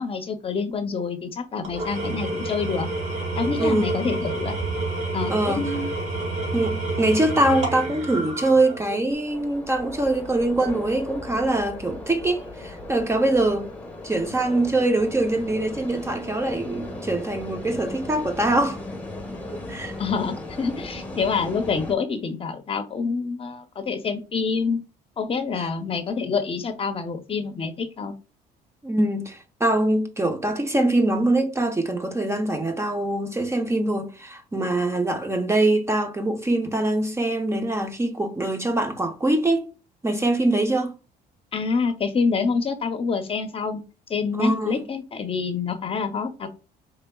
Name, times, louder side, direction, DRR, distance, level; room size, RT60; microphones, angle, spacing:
voice 1, 0.0-2.9 3.4-4.5 5.1-5.9 20.0-24.8 25.2-28.1 41.5-43.8 44.1-46.5, left 5 dB, 35° left, 0.7 m, -27 dB
Engine / Tools, 1.6-9.1, right 2 dB, 40° right, 2.0 m, -29 dB
voice 2, 5.3-5.6 6.5-13.7 14.0-18.8 19.7-19.9 25.6-25.7 28.8-39.7 40.0-41.0 44.4-44.8, right 2 dB, 15° right, 0.7 m, -23 dB
sound 1, 9.1-21.9, left 2 dB, 10° left, 1.1 m, -37 dB
4.7 x 3.3 x 2.3 m
cardioid pair, 110°, 17 cm